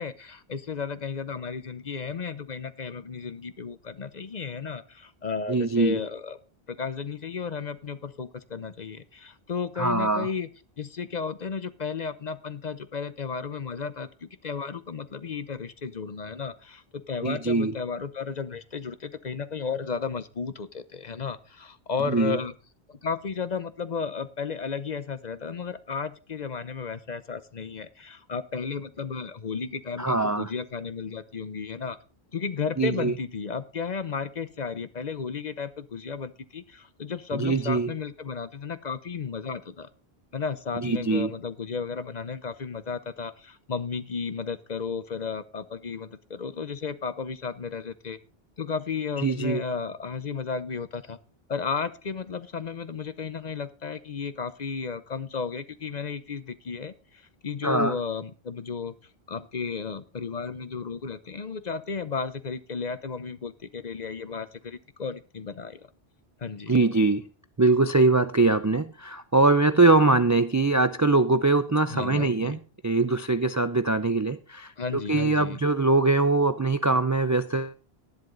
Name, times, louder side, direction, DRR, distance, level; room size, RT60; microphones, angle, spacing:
voice 1, 0.0-6.4 6.7-10.5 10.8-22.5 22.9-32.0 32.3-39.9 40.3-48.2 48.6-51.2 51.5-58.9 59.3-65.9 66.4-66.8 71.9-72.6 74.8-75.6, left 5 dB, 45° left, 0.8 m, -33 dB
voice 2, 5.5-6.0 9.8-10.3 17.2-17.7 22.1-22.4 30.0-30.5 32.8-33.1 37.4-37.9 40.8-41.3 49.2-49.6 57.6-58.0 66.7-67.3 67.6-77.7, right 3 dB, 25° right, 0.4 m, -22 dB
12.0 x 11.0 x 3.9 m
omnidirectional pair, 1.0 m